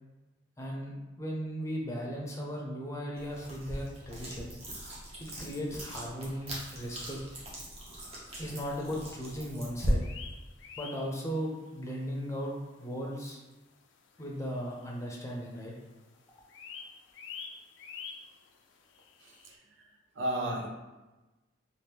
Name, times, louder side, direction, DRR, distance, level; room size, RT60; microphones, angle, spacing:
voice 1, 0.6-4.6 5.2-7.2 8.4-10.0 10.8-13.4 14.2-15.7, equal, 15° left, -2 dB, 0.6 m, -37 dB
sound 1, 3.2-9.9, equal, 35° right, 0.9 m, -39 dB
sound 2, 10.0-11.7 12.1-12.2 12.7-12.8 13.5-13.6 13.8-13.9 14.1-15.3 15.5-15.9 16.2-19.5, left 6 dB, 80° left, 0.4 m, -47 dB
voice 2, 19.2-19.6 20.2-20.7, right 1 dB, 90° right, 1 dB, 0.6 m, -33 dB
3.0 x 2.5 x 3.3 m, 1.1 s
head